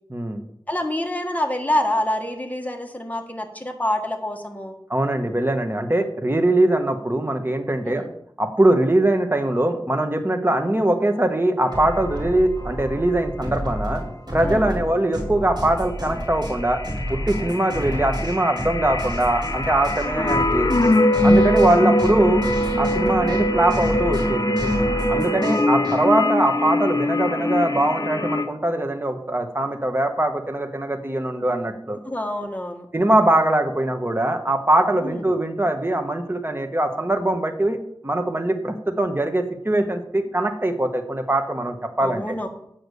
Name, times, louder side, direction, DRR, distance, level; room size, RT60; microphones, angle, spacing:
voice 1, 0.1-0.5 4.9-8.0 8.4-14.0 14.3-16.8 17.1-20.7 21.2-22.4 22.8-24.7 25.1-32.0 32.9-37.8 38.0-42.2, right 1 dB, 25° right, 6 dB, 1.3 m, -22 dB
voice 2, 0.7-4.7 7.9-8.1 14.4-14.7 20.0-20.4 23.2-23.5 25.2-25.9 32.0-32.9 35.0-35.3 42.0-42.5, left 1 dB, 20° left, 4 dB, 1.5 m, -27 dB
sound 1, 11.7-12.3 16.6-28.4, left 1 dB, 45° left, 0.7 m, -22 dB
sound 2, 11.7-26.0, equal, 50° right, 4.5 m, -30 dB
8.3 x 5.9 x 6.8 m, 0.73 s
wide cardioid pair, 55°, 9 cm